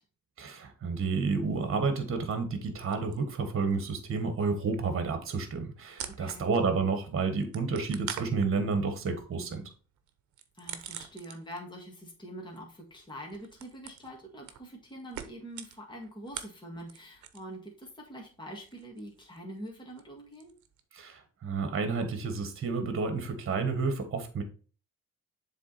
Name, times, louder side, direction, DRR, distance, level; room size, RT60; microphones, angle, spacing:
voice 1, 0.4-9.6 20.9-24.4, right 4 dB, 45° right, 8 dB, 1.5 m, -30 dB
sound 1, 2.9-3.8 4.0-6.8 7.1-11.8 12.0-17.6 17.8-20.8, right 9 dB, 70° right, 0.9 m, -45 dB
voice 2, 6.1-6.6 10.5-20.5, equal, 15° left, -1 dB, 2.0 m, -44 dB
7.3 x 3.6 x 4.2 m, 0.38 s
cardioid pair, 90°, 30 cm